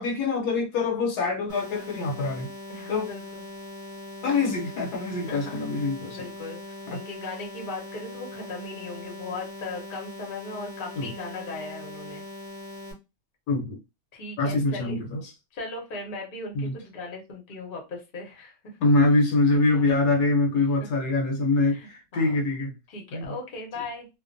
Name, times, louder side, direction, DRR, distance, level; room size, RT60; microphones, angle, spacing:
voice 1, 0.0-2.5 2.9-3.1 4.2-6.3 6.9-7.0 11.0-11.1 13.5-13.8 14.4-15.3 16.5-16.8 18.8-22.8 23.1-23.4, left 3 dB, 70° left, 1.1 m, -24 dB
sound 1, 1.5-12.9, left 1 dB, 30° right, 1.2 m, -41 dB
voice 2, 2.7-3.4 5.3-5.8 6.1-12.3 14.1-15.0 15.5-18.8 19.7-19.8 20.8-20.9 21.6-22.3 22.9-24.1, left 3 dB, 45° left, 0.7 m, -38 dB
2.8 x 2.1 x 2.5 m
omnidirectional pair, 1.9 m